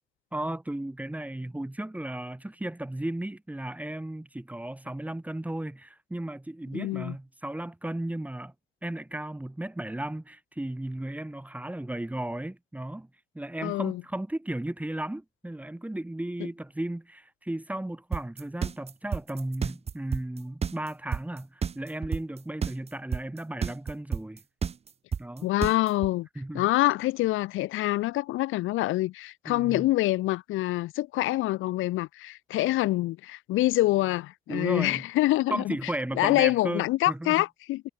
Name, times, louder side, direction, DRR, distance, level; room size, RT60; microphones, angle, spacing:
voice 1, 0.3-8.5 8.8-13.1 13.3-24.4 25.2-25.5 26.3-26.7 29.4-29.9 34.5-35.0 35.5-37.4, right 1 dB, 5° right, 1.1 m, -35 dB
voice 2, 6.7-7.1 13.6-14.0 25.4-26.3 26.5-35.8 36.2-37.9, left 17 dB, 85° left, 0.7 m, -26 dB
sound 1, 18.1-26.1, right 6 dB, 30° right, 0.6 m, -30 dB
cardioid pair, 90°, 20 cm